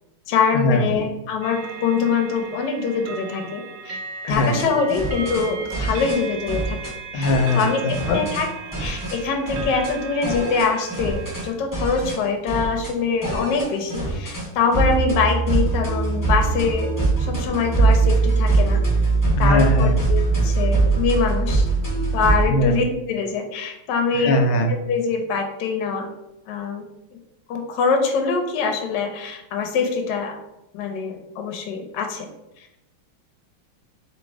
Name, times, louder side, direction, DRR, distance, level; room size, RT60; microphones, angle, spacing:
voice 1, 0.3-4.0 4.3-6.8 7.1-16.9 17.2-18.8 19.4-21.7 22.1-24.3 24.9-26.1 26.5-26.8 27.1-27.2 27.5-30.4 30.7-32.3, left 5 dB, 70° left, 4 dB, 1.2 m, -24 dB
sound 1, 1.4-11.5, right 5 dB, 75° right, 1.2 m, -37 dB
sound 2, 4.3-5.4 5.7-6.2 6.5-6.9 7.2-8.5 8.7-9.2 9.5-9.9 10.2-11.5 11.7-12.2 12.5-12.9 13.2-14.5 14.7-22.4, right 3 dB, 20° left, 0.5 m, -22 dB
voice 2, 7.1-8.2 19.3-19.9 22.5-22.7 24.2-24.7, left 1 dB, 90° left, 5 dB, 1.5 m, -20 dB
3.2 x 2.9 x 4.5 m, 0.89 s
omnidirectional pair, 2.3 m